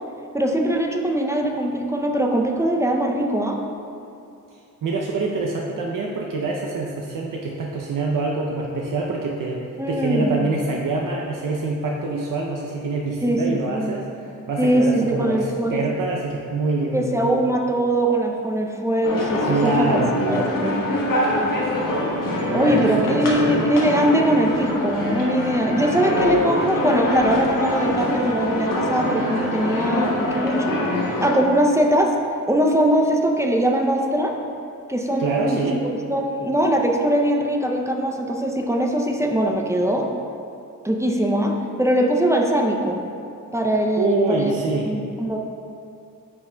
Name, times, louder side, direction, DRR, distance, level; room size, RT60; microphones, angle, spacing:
voice 1, 0.3-3.6 9.8-10.4 13.2-13.9 14.6-15.8 16.9-19.9 20.3-20.8 22.5-30.8 31.2-32.2 32.5-34.3 34.9-35.8 36.1-40.1 40.8-43.0 43.5-44.5 44.9-45.4, right 1 dB, 10° right, 1 dB, 0.5 m, -21 dB
voice 2, 4.8-17.3 19.4-20.5 22.5-23.5 35.2-35.8 44.0-44.9, right 3 dB, 75° right, -1 dB, 0.6 m, -25 dB
sound 1, 19.0-31.4, left 1 dB, 80° left, 1.2 m, -24 dB
9.2 x 5.8 x 2.2 m, 2.6 s
wide cardioid pair, 120°, 32 cm